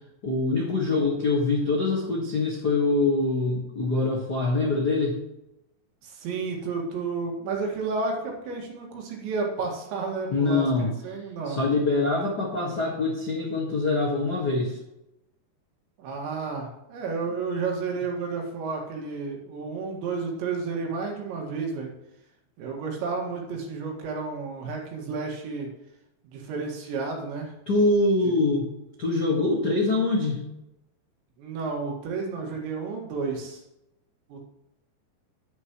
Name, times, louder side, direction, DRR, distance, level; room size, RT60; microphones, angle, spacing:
voice 1, 0.2-5.2 10.3-10.9 11.4-14.8 27.7-28.7 29.0-30.5, left 3 dB, 80° left, -4 dB, 0.9 m, -24 dB
voice 2, 6.0-10.7 11.0-11.6 16.0-21.9 22.6-25.7 26.2-27.5 28.2-28.3 31.4-33.6 34.3-34.4, right 4 dB, 80° right, 0 dB, 4.2 m, -31 dB
10.5 x 10.5 x 3.1 m, 0.89 s
omnidirectional pair, 5.2 m